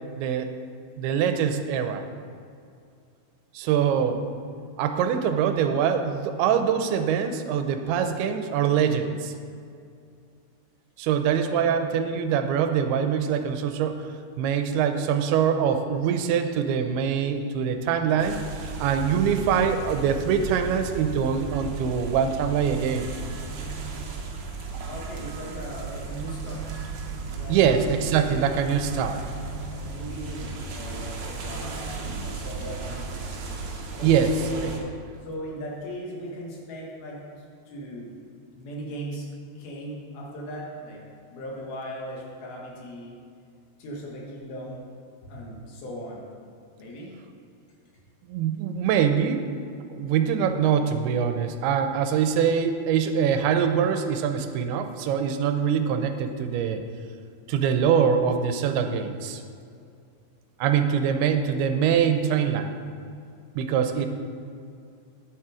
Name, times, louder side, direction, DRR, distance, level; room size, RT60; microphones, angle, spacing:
voice 1, 0.2-0.5 1.0-2.0 3.5-4.2 4.8-9.3 11.0-14.1 14.4-23.1 27.5-29.2 34.0-34.3 48.3-49.4 49.9-56.8 57.5-59.4 60.6-62.7 63.6-64.1, right 7 dB, 85° right, 7 dB, 2.6 m, -24 dB
voice 2, 4.1-4.7 11.5-12.0 24.8-26.7 27.3-28.3 28.8-29.4 29.7-33.3 34.0-34.8 35.2-37.2 37.7-38.1 38.6-39.3 39.6-41.0 41.3-43.1 43.8-44.9 45.2-46.3 46.8-47.1, equal, 70° left, -3 dB, 3.3 m, -38 dB
sound 1, 18.2-34.8, right 4 dB, 65° right, 1.8 m, -35 dB
10.0 x 7.4 x 4.9 m, 2.3 s
omnidirectional pair, 4.5 m